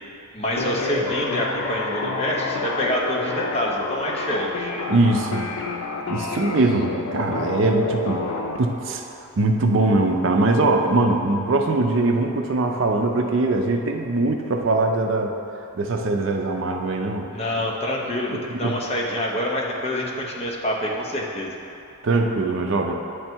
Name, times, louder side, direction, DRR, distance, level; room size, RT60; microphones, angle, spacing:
voice 1, 0.3-4.7 17.3-21.5, left 1 dB, 30° left, -2 dB, 0.7 m, -26 dB
sound 1, 0.6-8.6, left 3 dB, 90° left, 0.6 m, -29 dB
voice 2, 4.9-5.5 6.1-8.2 8.6-9.0 9.4-15.3 15.7-17.3 18.5-18.8 22.0-22.9, right 2 dB, 55° right, 3 dB, 0.5 m, -21 dB
9.3 x 3.3 x 4.4 m, 2.7 s
head